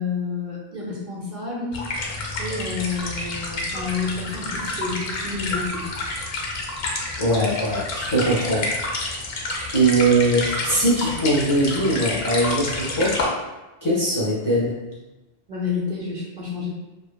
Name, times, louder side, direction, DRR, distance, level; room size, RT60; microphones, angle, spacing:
voice 1, 0.0-1.8 2.4-5.8 15.5-16.7, left 4 dB, 55° right, -4 dB, 0.6 m, -29 dB
sound 1, 1.7-13.2, left 2 dB, 75° left, 0.8 m, -29 dB
voice 2, 7.2-8.7 9.0-9.2 9.7-13.2 13.8-14.7, right 1 dB, 25° left, -8 dB, 0.5 m, -21 dB
2.7 x 2.4 x 2.2 m, 1.1 s
omnidirectional pair, 1.1 m